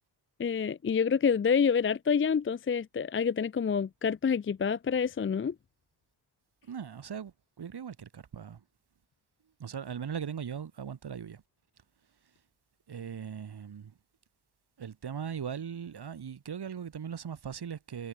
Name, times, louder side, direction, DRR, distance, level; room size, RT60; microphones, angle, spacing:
voice 1, 0.4-5.5, left 6 dB, 30° left, 0.5 m, -27 dB
voice 2, 6.6-8.6 9.6-11.4 12.2-12.3 12.9-14.0 14.8-18.1, right 7 dB, 60° right, 3.3 m, -39 dB
cardioid pair, 95°, 45 cm